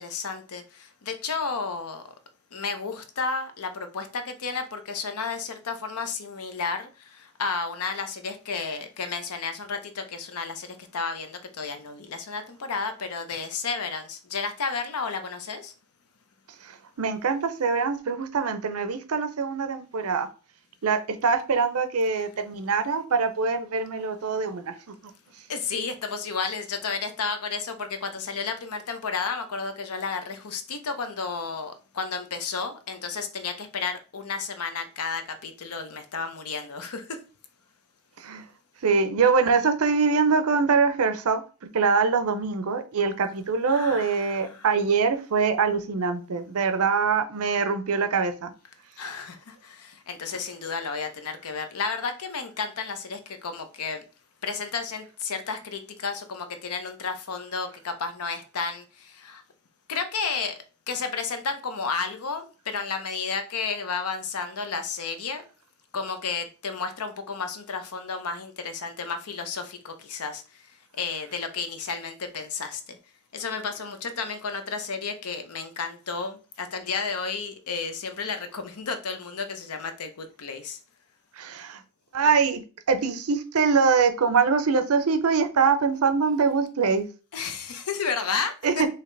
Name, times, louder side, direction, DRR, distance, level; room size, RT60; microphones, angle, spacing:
voice 1, 0.0-2.0 2.5-15.7 25.5-37.2 43.7-44.7 49.0-54.0 54.4-59.4 59.9-60.5 60.9-65.4 65.9-70.7 71.0-73.0 73.3-80.8 87.3-88.8, left 5 dB, 85° left, 0.7 m, -32 dB
voice 2, 16.6-20.3 20.8-25.1 38.2-38.4 38.8-41.4 41.7-48.5 81.4-81.8 82.1-82.6 82.9-87.1 88.6-88.9, right 5 dB, 75° right, 0.6 m, -24 dB
4.9 x 2.9 x 3.2 m
head